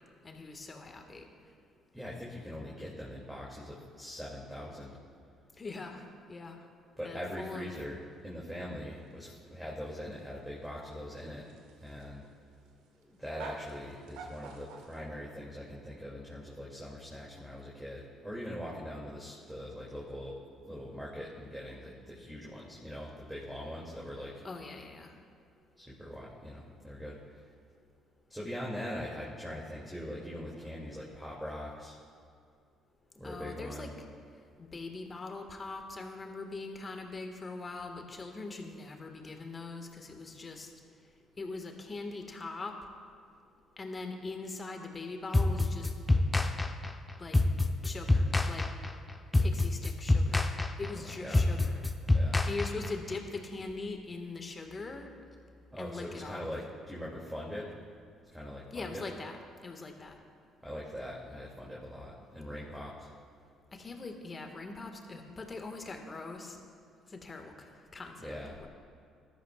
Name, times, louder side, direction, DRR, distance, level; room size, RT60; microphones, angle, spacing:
voice 1, 0.2-1.3 5.6-6.6 7.0-7.7 24.4-25.1 33.2-33.9 34.6-40.7 41.4-42.7 43.8-45.9 47.2-47.4 47.8-48.7 49.4-50.4 50.8-51.9 52.5-55.1 55.8-56.5 58.7-60.2 63.7-66.6 67.1-68.7, left 3 dB, 30° left, 4 dB, 1.8 m, -41 dB
voice 2, 1.9-4.9 7.0-8.0 8.2-11.5 11.8-12.3 13.0-20.4 20.6-24.3 25.8-27.3 28.3-32.0 33.1-33.9 51.2-51.4 52.1-52.4 55.7-57.7 58.3-59.0 60.6-63.1 68.2-68.5, equal, 5° right, -5 dB, 2.7 m, -42 dB
sound 1, 7.4-15.0, right 4 dB, 70° right, 1.3 m, -50 dB
sound 2, 45.3-53.1, left 2 dB, 15° left, 0.9 m, -27 dB
21.0 x 12.5 x 2.5 m, 2.3 s
figure-of-eight pair, 45°, 0 cm